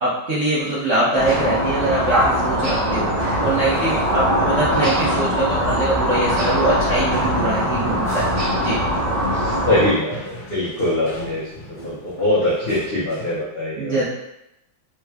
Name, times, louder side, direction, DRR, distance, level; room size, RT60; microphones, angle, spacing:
voice 1, 0.0-8.2 8.5-8.8 13.8-14.0, right 2 dB, 65° right, -9 dB, 0.7 m, -23 dB
sound 1, 0.6-13.4, left 1 dB, 50° left, 1.5 m, -38 dB
sound 2, 1.2-9.9, equal, 45° right, 1.4 m, -21 dB
voice 2, 9.3-11.5 11.8-14.0, left 1 dB, 75° left, -9 dB, 0.5 m, -22 dB
3.5 x 2.2 x 3.3 m, 0.86 s
omnidirectional pair, 2.1 m